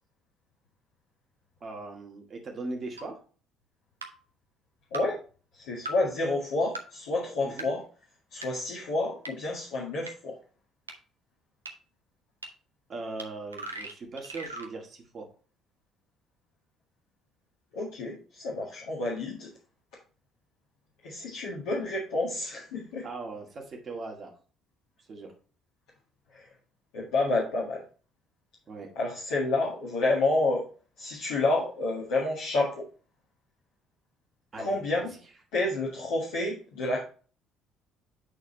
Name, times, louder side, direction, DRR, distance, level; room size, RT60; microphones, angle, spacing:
voice 1, 1.6-3.2 7.4-7.7 12.9-15.3 23.0-24.3 25.1-25.3 28.7-28.9 34.5-35.2, right 3 dB, 40° right, 2 dB, 2.0 m, -39 dB
sound 1, 3.0-3.1 4.0-4.1 4.9-5.0 5.9-6.0 6.7-6.8 7.6-7.7 8.4-8.5 9.2-9.3 10.1-10.2 10.9-11.0 11.7-11.8 12.4-12.5 13.2-13.3 13.5-14.7, right 2 dB, 80° right, 0.6 m, -38 dB
voice 2, 5.5-7.8 8.3-10.4 17.7-19.5 21.0-23.1 26.3-26.5 26.9-27.8 29.0-30.6 31.0-32.8 34.6-35.1 35.5-37.0, left 2 dB, 65° left, -6 dB, 1.8 m, -29 dB
8.2 x 4.1 x 4.0 m, 0.38 s
figure-of-eight pair, 50°, 0 cm